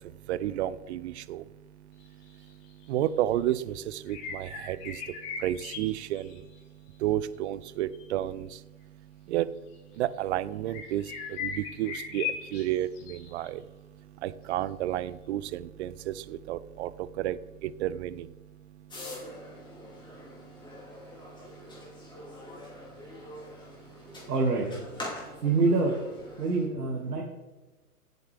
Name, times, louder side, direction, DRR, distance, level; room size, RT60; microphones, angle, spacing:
voice 1, 0.0-24.3 25.1-25.4 26.3-26.4 26.8-27.2, right 12 dB, 45° right, 17 dB, 0.6 m, -34 dB
sound 1, 2.0-2.1 2.8-3.1 4.1-6.6 7.9-8.1 9.7-9.8 10.7-13.5, left 7 dB, 40° left, 3.4 m, -38 dB
sound 2, 18.9-26.7, left 1 dB, 10° left, 2.8 m, -44 dB
voice 2, 24.1-24.7 25.4-26.0 26.4-27.2, right 3 dB, 85° right, -2 dB, 2.4 m, -26 dB
16.5 x 8.0 x 3.5 m, 1.1 s
hypercardioid pair, 125°, 46 cm